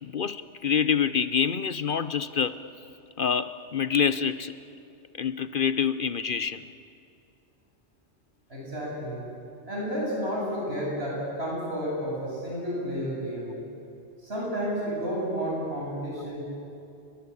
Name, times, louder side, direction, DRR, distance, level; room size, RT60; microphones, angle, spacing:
voice 1, 0.0-2.6 3.2-4.5 5.2-6.6, left 7 dB, 50° left, 0.9 m, -26 dB
voice 2, 8.5-9.2 9.7-13.6 14.2-16.4, equal, 60° right, 8.3 m, -31 dB
29.5 x 23.5 x 8.5 m
omnidirectional pair, 1.2 m